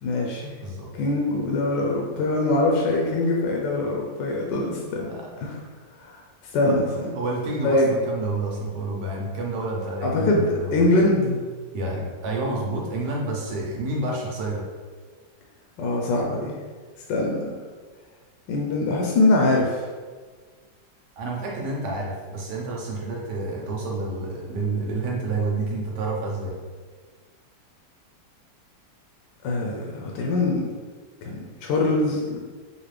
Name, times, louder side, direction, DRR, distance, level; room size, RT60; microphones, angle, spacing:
voice 1, 0.0-0.6 1.0-5.6 6.0-6.2 6.5-7.1 7.6-7.9 10.0-11.4 15.8-16.6 17.1-17.5 18.5-19.8 29.4-30.6 31.2-32.4, left 2 dB, 75° left, -1 dB, 1.2 m, -23 dB
voice 2, 7.1-10.9 11.7-14.6 21.2-26.6, right 2 dB, 70° right, -2 dB, 1.4 m, -29 dB
4.1 x 2.5 x 3.2 m, 1.5 s
omnidirectional pair, 2.0 m